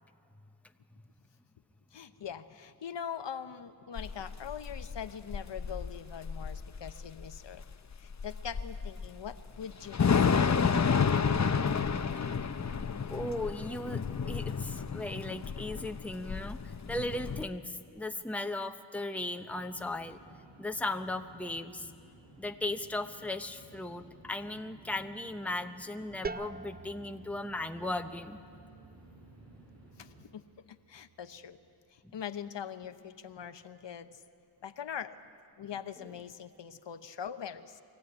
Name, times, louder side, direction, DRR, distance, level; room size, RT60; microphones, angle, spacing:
voice 1, 1.9-7.6 8.0-10.8 30.0-31.6 31.9-34.2 34.6-35.2 35.6-37.8, left 8 dB, 65° left, 10 dB, 0.9 m, -42 dB
Thunder / Rain, 4.0-17.4, left 6 dB, 35° left, 0.8 m, -31 dB
voice 2, 13.1-14.0 14.3-20.2 20.6-21.9 22.4-28.4, left 2 dB, 5° left, 7 dB, 0.9 m, -37 dB
sound 1, 19.4-30.3, right 1 dB, 70° right, 5.5 m, -56 dB
sound 2, 26.2-31.8, right 4 dB, 20° right, 0.5 m, -47 dB
23.5 x 15.0 x 9.7 m, 2.4 s
cardioid pair, 65°, 46 cm